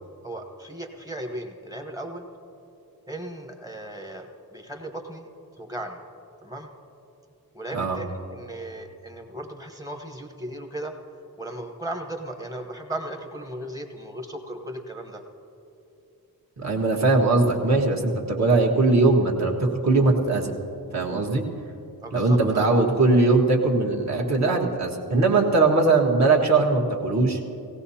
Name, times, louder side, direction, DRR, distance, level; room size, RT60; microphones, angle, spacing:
voice 1, 0.2-2.3 3.1-5.3 5.6-6.0 6.4-6.7 7.5-10.9 11.4-15.2 22.0-22.8, right 1 dB, 10° right, 3 dB, 1.1 m, -36 dB
voice 2, 16.6-20.5 20.9-21.4 22.1-27.4, right 3 dB, 45° right, 0 dB, 1.5 m, -20 dB
18.0 x 17.5 x 2.8 m, 2.8 s
wide cardioid pair, 150°, 37 cm